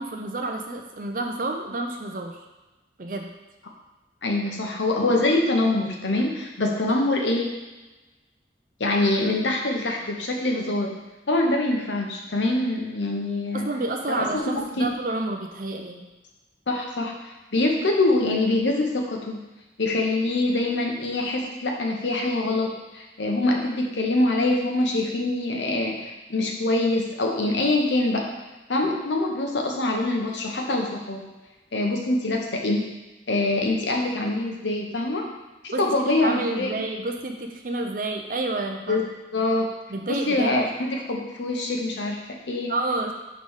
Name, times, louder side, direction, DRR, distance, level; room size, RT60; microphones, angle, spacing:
voice 1, 0.0-2.4 3.0-3.3 6.9-7.0 13.5-16.1 35.7-39.1 39.9-40.5 42.7-43.1, right 2 dB, 50° right, 3 dB, 0.6 m, -29 dB
voice 2, 4.2-7.5 8.8-11.0 11.3-13.7 14.2-14.9 16.7-17.2 17.5-19.4 19.8-28.3 28.7-31.3 31.7-32.9 33.3-35.3 35.6-36.8 38.9-39.0 39.3-39.7 40.1-42.7, left 2 dB, 85° left, 1 dB, 1.0 m, -24 dB
5.1 x 3.4 x 5.5 m, 1.1 s
head